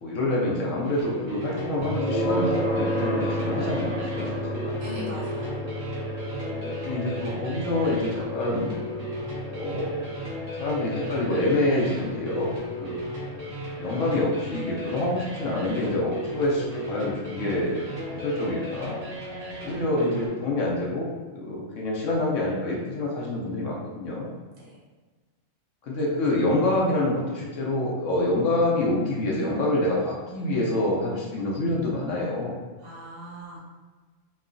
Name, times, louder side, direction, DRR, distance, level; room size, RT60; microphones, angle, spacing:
voice 1, 0.0-4.4 4.6-4.8 6.5-8.8 9.5-13.0 13.8-19.0 19.6-24.3 25.8-32.5, left 1 dB, 70° left, -3 dB, 0.9 m, -27 dB
sound 1, 0.8-20.3, equal, 45° right, 0.5 m, -36 dB
sound 2, 1.8-16.7, equal, 45° left, 0.8 m, -33 dB
voice 2, 4.8-5.5 19.6-19.7 24.5-24.8 32.8-33.7, right 1 dB, 85° right, -5 dB, 1.3 m, -40 dB
3.0 x 2.2 x 2.4 m, 1.3 s
omnidirectional pair, 1.5 m